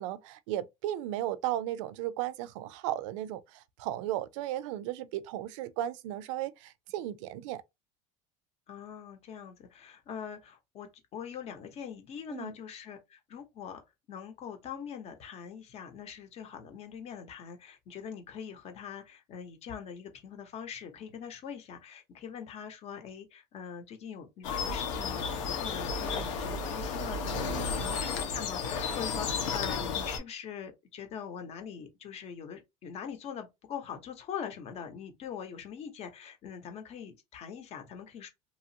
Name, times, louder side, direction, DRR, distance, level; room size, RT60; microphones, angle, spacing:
voice 1, 0.0-7.6 12.3-12.5 27.3-27.8, right 13 dB, 85° right, 0.4 m, -35 dB
voice 2, 8.7-13.8 14.1-38.3, left 7 dB, 40° left, 0.9 m, -43 dB
sound 1, 24.4-30.2, left 5 dB, 85° left, 1.0 m, -33 dB
2.9 x 2.4 x 2.7 m
cardioid pair, 135°, 16 cm